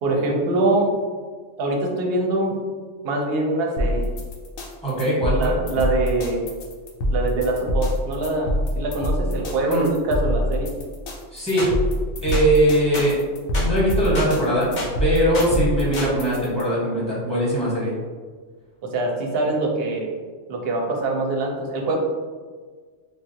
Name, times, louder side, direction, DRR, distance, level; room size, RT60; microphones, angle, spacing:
voice 1, 0.0-0.9 1.6-2.5 3.0-4.1 5.4-6.4 7.1-10.7 18.8-20.1 20.5-22.0, right 2 dB, 60° right, 0 dB, 0.7 m, -23 dB
sound 1, 3.8-16.6, equal, 85° left, 1.0 m, -25 dB
voice 2, 4.8-5.5 9.7-9.9 11.3-11.7 12.2-13.2 13.6-14.7 15.0-17.9, right 1 dB, 5° left, -8 dB, 1.0 m, -21 dB
sound 2, 11.6-11.7 12.3-12.5 12.9-13.1 13.5-13.7 14.2-14.3 14.8-14.9 15.3-15.5 16.0-16.1, left 1 dB, 55° left, 0.5 m, -29 dB
3.3 x 2.4 x 2.7 m, 1.5 s
omnidirectional pair, 1.3 m